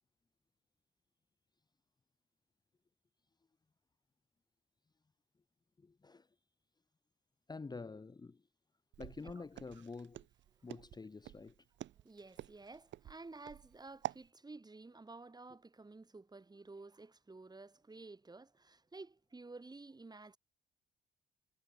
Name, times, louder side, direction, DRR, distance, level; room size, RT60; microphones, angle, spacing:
voice 1, 5.8-6.3 7.5-8.4 9.0-10.2 10.6-11.5, left 4 dB, 20° left, 0.9 m, -48 dB
Walk footsteps, 8.9-14.3, right 13 dB, 65° right, 0.7 m, -47 dB
voice 2, 11.8-20.4, right 3 dB, 20° right, 2.8 m, -53 dB
cardioid pair, 90°, 20 cm